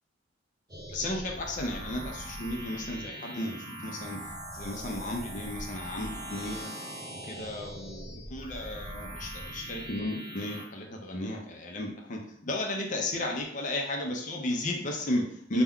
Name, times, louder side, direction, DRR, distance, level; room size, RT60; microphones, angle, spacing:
sound 1, 0.7-10.7, right 1 dB, 20° right, 0.5 m, -41 dB
voice 1, 0.9-6.7 7.2-15.6, left 1 dB, 40° left, 1 dB, 0.5 m, -34 dB
2.2 x 2.1 x 3.5 m, 0.66 s
head